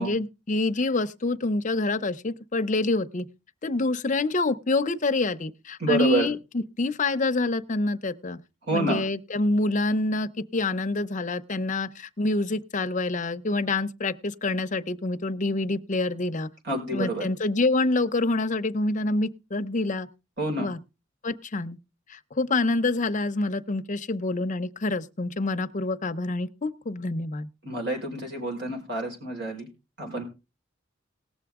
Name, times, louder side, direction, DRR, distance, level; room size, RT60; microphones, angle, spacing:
voice 1, 0.0-3.2 3.6-8.4 8.7-16.5 16.9-20.1 20.6-20.8 21.2-21.8 22.1-27.5, left 2 dB, 40° left, 0.7 m, -27 dB
voice 2, 5.8-6.3 8.6-9.0 16.7-17.3 20.4-20.7 27.6-29.7 30.0-30.2, right 2 dB, 60° right, 5.0 m, -28 dB
19.0 x 6.9 x 3.6 m
head